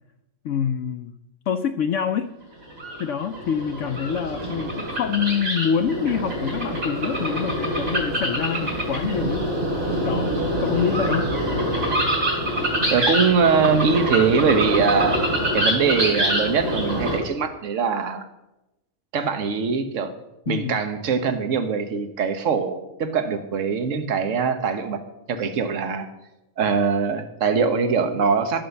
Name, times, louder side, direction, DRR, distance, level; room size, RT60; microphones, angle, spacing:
voice 1, 0.4-1.1 1.5-2.3 3.0-9.5 10.0-11.3 20.5-20.8, left 7 dB, 70° left, 7 dB, 0.9 m, -26 dB
sound 1, 2.6-17.2, right 1 dB, 80° right, 3.7 m, -25 dB
voice 2, 12.9-15.2 15.5-18.2 19.1-20.1 20.5-25.0 25.3-26.1 26.6-28.6, right 5 dB, 65° right, 9 dB, 1.4 m, -22 dB
12.5 x 7.6 x 7.0 m, 0.94 s
omnidirectional pair, 1.4 m